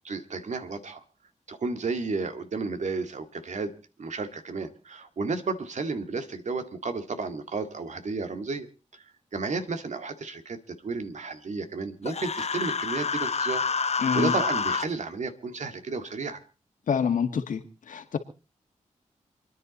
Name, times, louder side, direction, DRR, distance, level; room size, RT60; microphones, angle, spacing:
voice 1, 0.0-1.0 1.5-3.7 4.0-8.7 8.9-9.0 9.3-13.6 13.9-16.4, right 4 dB, 65° right, 8 dB, 2.0 m, -32 dB
Human voice, 12.1-14.9, left 5 dB, 55° left, 1.0 m, -28 dB
voice 2, 14.0-14.3 16.9-17.6 17.9-18.2, left 7 dB, 90° left, 6 dB, 2.1 m, -26 dB
28.0 x 10.5 x 4.1 m, 0.35 s
cardioid pair, 60°, 13 cm